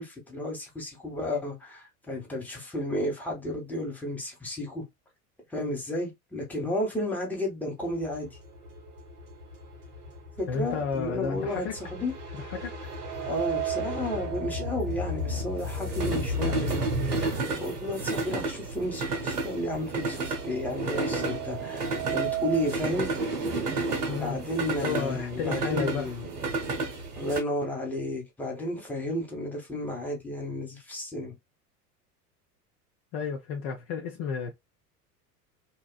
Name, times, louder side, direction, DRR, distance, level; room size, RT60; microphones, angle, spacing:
voice 1, 0.0-4.8 5.5-8.3 10.4-12.1 13.3-23.1 24.2-26.4 27.1-31.3, left 1 dB, 5° left, 1.0 m, -32 dB
sound 1, 7.9-27.4, right 2 dB, 80° right, 0.8 m, -32 dB
voice 2, 10.5-11.7 12.3-12.9 24.1-24.4 24.8-26.1 33.1-34.5, left 6 dB, 45° left, 0.6 m, -32 dB
sound 2, 13.0-17.0 17.4-17.5 18.5-18.6 18.9-22.8, right 14 dB, 35° right, 0.6 m, -36 dB
2.7 x 2.3 x 2.2 m
figure-of-eight pair, 75°, 46 cm